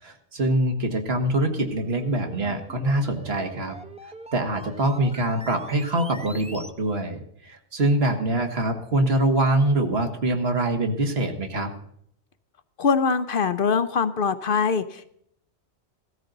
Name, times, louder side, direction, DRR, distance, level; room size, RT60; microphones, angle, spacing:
voice 1, 0.0-3.8 4.3-11.7, right 1 dB, 65° right, 5 dB, 1.8 m, -24 dB
sound 1, 1.6-6.7, right 1 dB, 5° right, 0.7 m, -43 dB
voice 2, 12.8-15.2, left 5 dB, 60° left, 12 dB, 0.8 m, -23 dB
16.5 x 13.5 x 3.9 m, 0.69 s
omnidirectional pair, 1.1 m